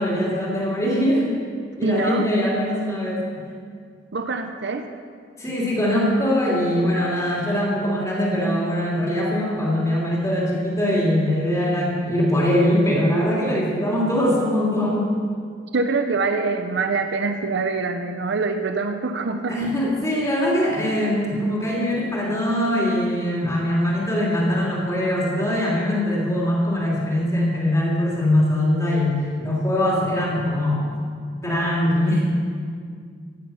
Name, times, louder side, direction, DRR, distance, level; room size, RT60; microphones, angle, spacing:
voice 1, 0.0-1.3 1.8-3.2 5.4-15.2 19.5-30.9 31.4-32.2, left 1 dB, 15° left, -5 dB, 3.0 m, -22 dB
voice 2, 1.8-2.3 4.1-4.9 15.7-19.6, right 3 dB, 65° right, 6 dB, 0.7 m, -24 dB
15.5 x 8.8 x 5.7 m, 2.1 s
head